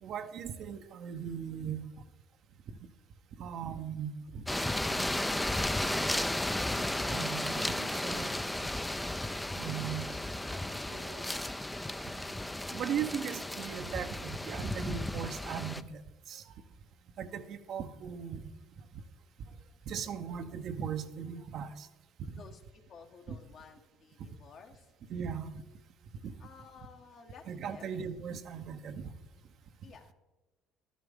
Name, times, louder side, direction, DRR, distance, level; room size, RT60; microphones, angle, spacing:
voice 1, 0.0-1.9 2.7-2.8 3.3-4.5 7.1-8.3 9.5-10.2 10.5-10.6 10.9-11.4 12.7-16.0 16.3-16.5 17.2-18.5 19.9-21.9 22.2-22.4 23.3-23.4 25.1-25.6 26.2-26.3 27.5-29.1, right 7 dB, 60° right, 9 dB, 0.7 m, -38 dB
sound 1, 4.5-15.8, left 1 dB, 10° left, 0.5 m, -34 dB
voice 2, 22.3-24.9 26.4-28.1 29.8-30.1, left 6 dB, 55° left, 2 dB, 1.5 m, -54 dB
12.5 x 11.0 x 3.6 m, 1.1 s
hypercardioid pair, 65°, 0 cm